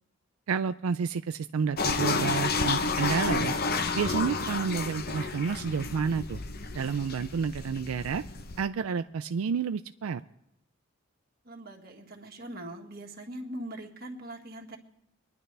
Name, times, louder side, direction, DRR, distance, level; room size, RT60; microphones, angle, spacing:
voice 1, 0.5-3.5 3.9-6.4 6.7-8.2 8.6-10.2, right 6 dB, 85° right, 10 dB, 0.4 m, -30 dB
sound 1, 1.8-8.6, left 4 dB, 45° left, 0.7 m, -31 dB
voice 2, 11.4-14.8, right 1 dB, 45° right, 1 dB, 1.7 m, -41 dB
24.5 x 10.5 x 3.3 m, 0.81 s
head